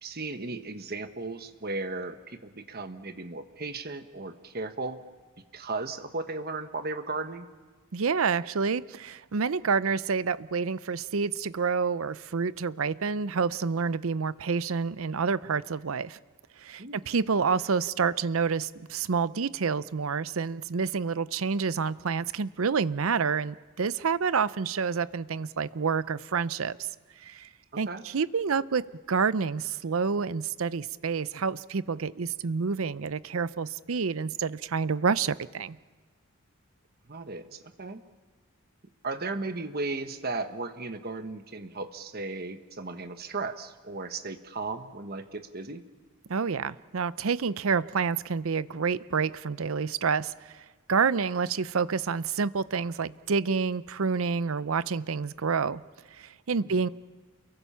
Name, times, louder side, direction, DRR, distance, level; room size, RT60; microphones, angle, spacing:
voice 1, 0.0-5.0 5.5-7.5 16.8-17.0 27.9-28.0 37.1-38.0 39.0-45.8 56.6-56.8, right 3 dB, 45° right, 8 dB, 1.3 m, -36 dB
voice 2, 7.9-16.2 16.6-26.9 27.2-27.5 27.8-28.8 29.1-35.8 46.3-55.8 56.1-56.9, right 5 dB, 70° right, 17 dB, 0.6 m, -28 dB
29.0 x 22.5 x 5.7 m, 1.4 s
head